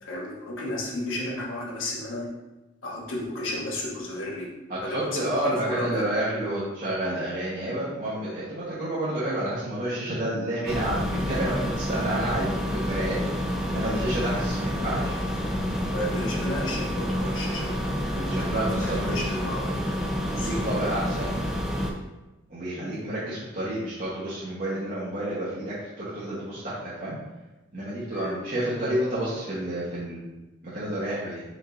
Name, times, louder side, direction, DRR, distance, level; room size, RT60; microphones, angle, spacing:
voice 1, 0.0-2.3 2.8-4.5 4.8-6.1 15.9-17.8 18.1-19.7 20.3-20.6 28.1-28.4, left 1 dB, 80° left, -3 dB, 1.2 m, -33 dB
voice 2, 4.7-13.2 13.7-15.1 18.1-19.2 20.3-21.4 22.5-27.2 27.7-30.3 30.6-31.4, right 1 dB, 45° right, -10 dB, 1.1 m, -30 dB
sound 1, 10.7-21.9, equal, ahead, 0.4 m, -28 dB
5.1 x 2.6 x 3.8 m, 1.1 s
head